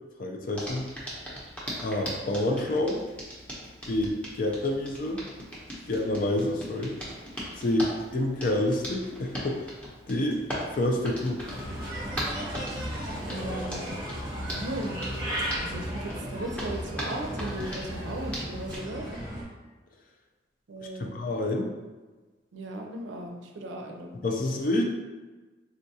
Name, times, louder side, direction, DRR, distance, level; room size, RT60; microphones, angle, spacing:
voice 1, 0.2-0.8 1.8-3.0 3.9-5.2 5.9-7.0 7.6-9.7 10.1-10.4 10.7-11.5 20.8-21.7 24.2-24.8, left 1 dB, 45° left, 2 dB, 0.4 m, -28 dB
Hands, 0.5-18.8, equal, 5° left, 0.6 m, -40 dB
Bird, 11.4-19.4, equal, 25° right, 0.8 m, -35 dB
voice 2, 13.2-13.9 14.4-15.0 15.6-19.1 20.7-21.1 22.5-24.2, right 1 dB, 85° right, 2 dB, 0.5 m, -37 dB
3.7 x 2.3 x 2.7 m, 1.2 s
head